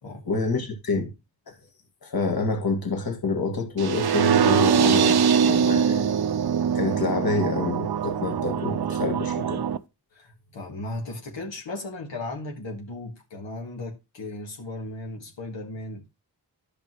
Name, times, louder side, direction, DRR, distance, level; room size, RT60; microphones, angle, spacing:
voice 1, 0.3-1.1 1.5-1.6 2.0-6.1 6.7-9.6, left 3 dB, 55° left, 1.9 m, -27 dB
sound 1, 3.8-9.8, right 7 dB, 65° right, 0.6 m, -22 dB
voice 2, 10.1-16.1, left 2 dB, 85° left, 1.8 m, -36 dB
11.5 x 5.2 x 3.1 m
cardioid pair, 50°, 43 cm